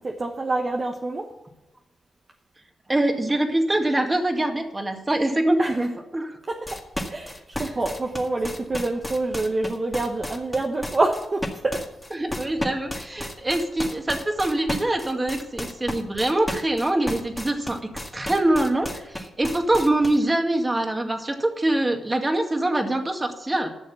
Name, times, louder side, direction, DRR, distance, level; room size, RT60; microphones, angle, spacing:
voice 1, 0.0-1.3 5.6-5.9 6.5-11.9, right 2 dB, 40° right, 2 dB, 1.2 m, -27 dB
voice 2, 2.9-5.9 6.1-6.4 12.2-23.7, right 1 dB, 20° right, 4 dB, 2.0 m, -24 dB
sound 1, 6.7-20.2, equal, 10° left, 1.9 m, -33 dB
11.5 x 6.4 x 7.2 m, 1.0 s
supercardioid pair, 55°, 0 cm